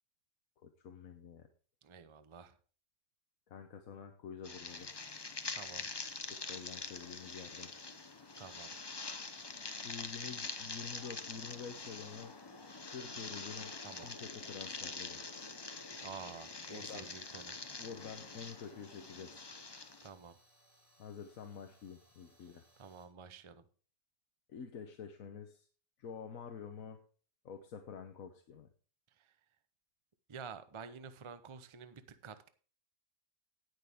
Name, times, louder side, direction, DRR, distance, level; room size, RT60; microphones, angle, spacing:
voice 1, 0.6-1.5 3.5-4.9 6.5-7.7 9.8-12.3 12.9-15.2 16.7-17.1 17.8-19.5 21.0-22.6 24.5-25.7 26.0-27.0 27.4-28.7, left 6 dB, 60° left, 6 dB, 1.3 m, -48 dB
voice 2, 1.8-2.6 5.5-5.9 8.4-8.7 13.8-14.1 15.9-17.6 20.0-20.4 22.8-23.6 29.1-29.4 30.3-32.5, right 6 dB, 40° right, 11 dB, 0.4 m, -50 dB
sound 1, 4.4-20.1, left 3 dB, 40° left, 0.3 m, -45 dB
sound 2, 4.7-23.1, right 1 dB, 20° left, 4.7 m, -69 dB
18.0 x 6.5 x 3.6 m, 0.40 s
omnidirectional pair, 1.8 m